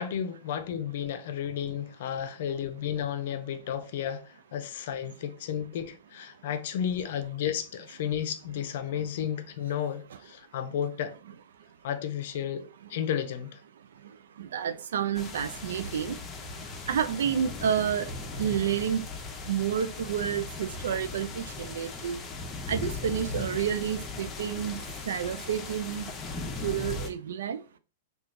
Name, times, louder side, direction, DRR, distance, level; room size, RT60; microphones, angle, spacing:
voice 1, 0.0-4.2 4.5-11.1 11.8-12.6 12.9-13.6, left 9 dB, 65° left, 0.5 m, -32 dB
voice 2, 14.4-16.2 16.9-18.1 18.4-19.1 19.5-22.2 22.7-24.8 25.1-26.1 26.6-27.6, right 8 dB, 80° right, 0.4 m, -30 dB
sound 1, 15.1-27.1, left 3 dB, 20° left, 0.7 m, -38 dB
3.0 x 2.3 x 3.7 m
hypercardioid pair, 130°, 0 cm